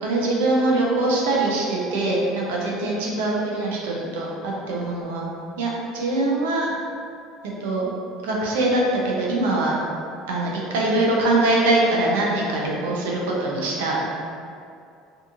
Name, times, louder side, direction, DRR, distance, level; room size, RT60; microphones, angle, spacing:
voice 1, 0.0-5.3 5.6-6.7 7.6-7.9 8.2-9.8 10.3-14.0, right 2 dB, 80° right, -3 dB, 0.5 m, -23 dB
2.7 x 2.4 x 2.5 m, 2.5 s
hypercardioid pair, 80°, 0 cm